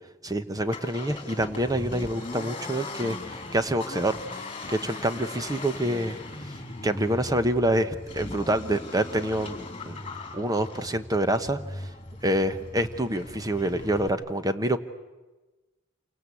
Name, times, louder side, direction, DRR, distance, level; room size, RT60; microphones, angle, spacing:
voice 1, 0.2-6.5 6.8-10.0 10.3-11.9 12.2-14.8, right 1 dB, 20° right, 10 dB, 1.1 m, -27 dB
Accelerating revving vroom, 0.6-14.1, left 2 dB, 30° left, 3.2 m, -39 dB
28.0 x 25.0 x 8.5 m, 1.2 s
head